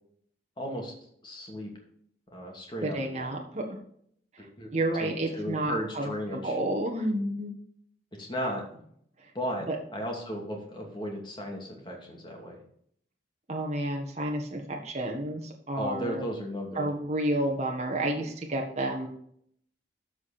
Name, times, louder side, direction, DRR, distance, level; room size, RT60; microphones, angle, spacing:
voice 1, 0.6-0.9 1.2-1.7 2.3-3.3 4.4-4.7 5.0-6.6 8.2-8.8 9.3-9.7 9.9-12.6 15.7-16.9, equal, 25° left, 0 dB, 2.5 m, -35 dB
voice 2, 2.8-3.8 4.7-7.5 9.7-9.8 13.5-16.2 16.7-19.1, right 1 dB, 40° right, 0 dB, 1.6 m, -30 dB
13.5 x 5.1 x 4.3 m, 0.65 s
head